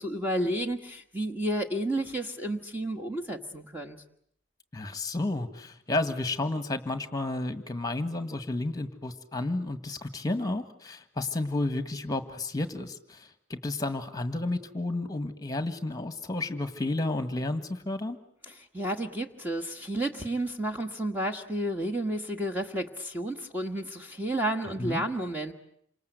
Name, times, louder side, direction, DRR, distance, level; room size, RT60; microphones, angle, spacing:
voice 1, 0.0-4.0 18.5-25.5, right 1 dB, 10° right, 3 dB, 1.5 m, -31 dB
voice 2, 4.7-18.2 24.8-25.0, left 2 dB, 20° left, 10 dB, 1.7 m, -31 dB
28.5 x 26.0 x 8.0 m, 0.69 s
head